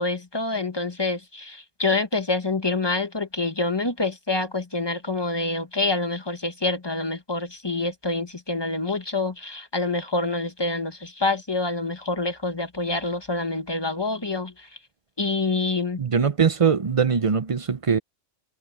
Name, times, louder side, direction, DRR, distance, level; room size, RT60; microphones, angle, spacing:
voice 1, 0.0-14.7 15.2-16.0, left 3 dB, 20° left, 1.2 m, -27 dB
voice 2, 16.0-18.0, right 6 dB, 40° right, 0.5 m, -21 dB
omnidirectional pair, 1.3 m